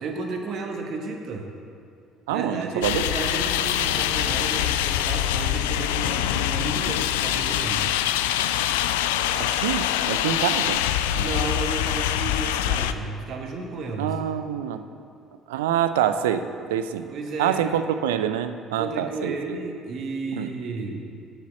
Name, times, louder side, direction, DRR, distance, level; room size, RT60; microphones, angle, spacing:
voice 1, 0.0-1.5 2.3-7.8 11.1-14.1 17.1-17.7 18.8-21.0, right 3 dB, 50° right, 2 dB, 1.4 m, -33 dB
voice 2, 2.3-3.0 9.4-10.8 11.2-11.3 14.0-14.8 15.5-17.1 17.4-19.4 20.4-20.5, right 10 dB, 70° right, 10 dB, 0.4 m, -26 dB
sound 1, 2.8-12.9, left 11 dB, 70° left, 0.3 m, -24 dB
8.3 x 7.1 x 7.3 m, 2.4 s
figure-of-eight pair, 55°, 0 cm